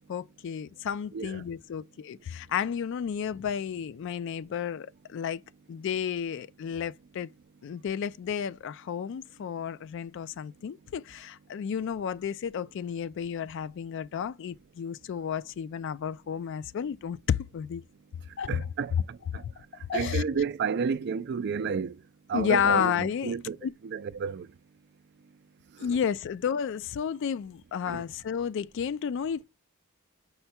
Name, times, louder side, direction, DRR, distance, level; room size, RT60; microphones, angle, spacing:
voice 1, 0.1-5.4 5.7-7.3 7.6-17.8 18.4-18.5 19.4-19.5 19.9-20.4 22.3-23.4 23.6-23.7 25.8-29.4, left 7 dB, 60° left, 0.3 m, -32 dB
voice 2, 1.1-1.4 18.5-19.4 19.9-22.0 22.3-23.6 23.8-24.5 25.8-26.0 27.9-28.0, right 6 dB, 55° right, 0.4 m, -31 dB
5.6 x 2.2 x 4.2 m
head